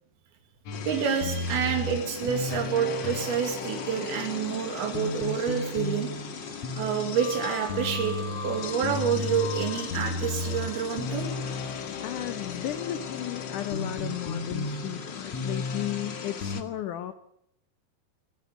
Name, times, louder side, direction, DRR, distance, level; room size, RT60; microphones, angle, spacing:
sound 1, 0.7-16.6, left 4 dB, 55° left, 2.0 m, -35 dB
sound 2, 0.7-16.6, left 6 dB, 40° left, 1.9 m, -40 dB
voice 1, 0.9-6.1 6.7-11.3, right 7 dB, 75° right, 3 dB, 4.3 m, -28 dB
voice 2, 12.0-17.1, left 12 dB, 70° left, 11 dB, 2.0 m, -34 dB
26.0 x 15.5 x 7.3 m, 0.76 s
omnidirectional pair, 4.5 m